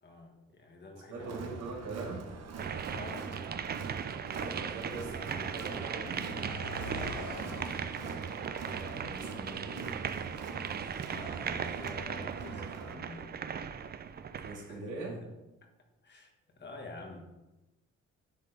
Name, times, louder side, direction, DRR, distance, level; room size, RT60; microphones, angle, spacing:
voice 1, 0.0-1.5 2.9-3.3 6.8-7.6 11.1-13.4 14.7-15.3 16.0-17.2, left 2 dB, 35° left, 2 dB, 1.5 m, -48 dB
voice 2, 1.1-2.2 4.3-6.3 8.6-9.9 14.4-15.2, right 3 dB, 80° right, -4 dB, 2.4 m, -42 dB
Crowd, 1.2-12.9, right 5 dB, 60° right, 0.9 m, -43 dB
sound 1, 2.6-14.7, right 7 dB, 35° right, 0.4 m, -38 dB
Car passing by, 3.6-13.7, left 2 dB, 85° left, 1.3 m, -49 dB
10.5 x 3.6 x 4.0 m, 1.0 s
cardioid pair, 90°, 30 cm